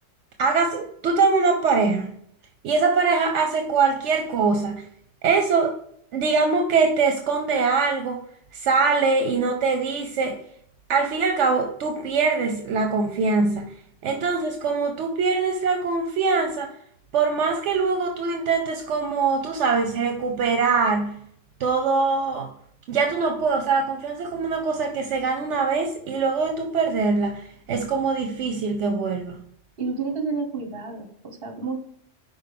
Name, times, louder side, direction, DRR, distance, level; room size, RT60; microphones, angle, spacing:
voice 1, 0.4-2.1 2.6-4.9 5.2-5.7 6.1-8.2 8.5-10.4 10.9-13.7 14.0-16.7 17.1-21.2 21.6-22.5 22.9-29.4, right 4 dB, 80° right, 4 dB, 1.0 m, -23 dB
voice 2, 29.8-31.8, right 4 dB, 55° right, 4 dB, 1.5 m, -30 dB
5.4 x 4.3 x 5.1 m, 0.68 s
omnidirectional pair, 1.2 m